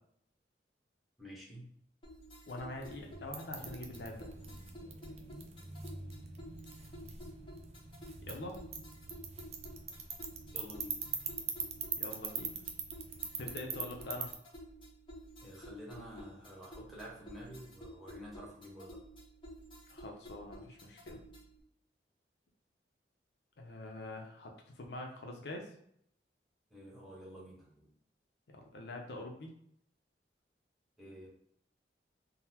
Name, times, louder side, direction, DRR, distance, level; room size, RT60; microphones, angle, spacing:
voice 1, 1.2-1.7 10.5-11.0 15.4-19.0 26.7-27.9 31.0-31.3, equal, ahead, -6 dB, 1.0 m, -49 dB
sound 1, 2.0-21.6, equal, 30° left, 0.9 m, -52 dB
voice 2, 2.5-4.3 8.2-8.6 12.0-12.6 13.4-14.3 19.9-21.2 23.6-25.7 28.5-29.5, left 2 dB, 65° left, 1 dB, 0.5 m, -44 dB
sound 2, 2.7-14.3, right 6 dB, 40° right, 0.4 m, -43 dB
3.7 x 2.0 x 2.8 m, 0.69 s
head